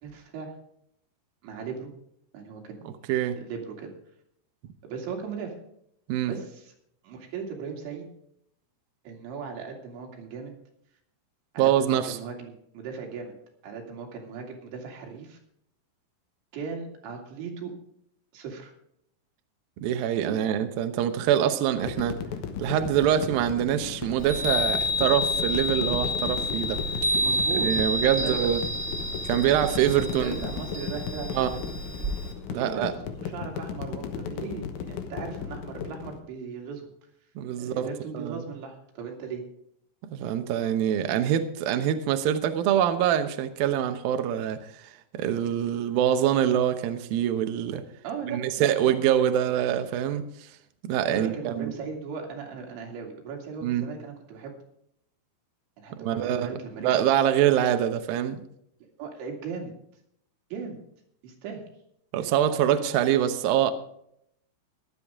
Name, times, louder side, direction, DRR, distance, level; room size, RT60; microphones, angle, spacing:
voice 1, 0.0-0.5 1.4-1.9 2.3-2.8 3.4-3.9 4.8-5.5 6.3-6.7 7.0-8.1 9.0-10.5 11.5-13.3 13.6-15.4 16.5-17.7 18.3-18.7 20.3-20.5 27.2-27.7 28.0-28.5 29.8-31.6 32.6-36.9 37.6-39.4 48.0-48.9 51.1-54.5 55.8-57.0 59.0-59.7 60.5-60.8 61.2-61.6, right 5 dB, 90° right, 1 dB, 4.8 m, -37 dB
voice 2, 11.6-12.2 19.8-22.2 22.6-26.8 27.5-28.6 29.2-30.5 31.3-31.5 32.5-32.9 37.4-37.9 38.1-38.4 40.1-47.8 48.3-50.2 50.8-51.7 53.6-53.9 56.0-56.6 56.8-58.4 62.1-63.7, right 10 dB, 70° right, 8 dB, 2.4 m, -25 dB
sound 1, 21.8-36.2, left 7 dB, 70° left, 1.9 m, -36 dB
Chime, 24.2-32.3, left 1 dB, 20° right, 2.1 m, -29 dB
15.5 x 11.5 x 3.7 m, 0.73 s
omnidirectional pair, 5.1 m